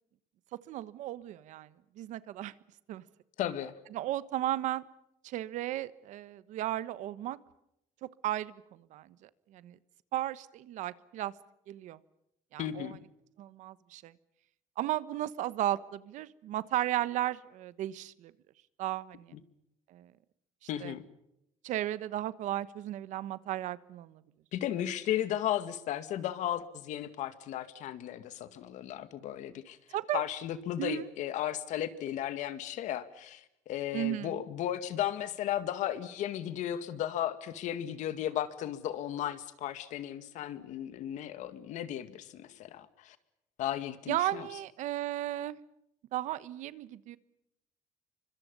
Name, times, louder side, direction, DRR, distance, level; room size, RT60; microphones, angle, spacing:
voice 1, 0.5-1.7 2.0-2.5 2.9-3.0 3.9-4.9 5.2-7.4 8.0-9.8 10.1-11.3 11.7-12.0 12.5-13.0 13.4-14.1 14.8-18.3 18.8-19.3 19.9-20.1 20.8-20.9 21.6-24.2 29.9-30.2 30.8-31.1 33.9-34.4 44.1-45.6 46.1-47.2, right 13 dB, 70° right, 16 dB, 1.2 m, -35 dB
voice 2, 3.4-3.7 12.6-13.0 20.7-21.0 24.5-29.8 30.1-43.2 43.6-44.5, left 11 dB, 70° left, 12 dB, 2.1 m, -35 dB
29.5 x 25.0 x 5.4 m, 0.82 s
cardioid pair, 155°, 13 cm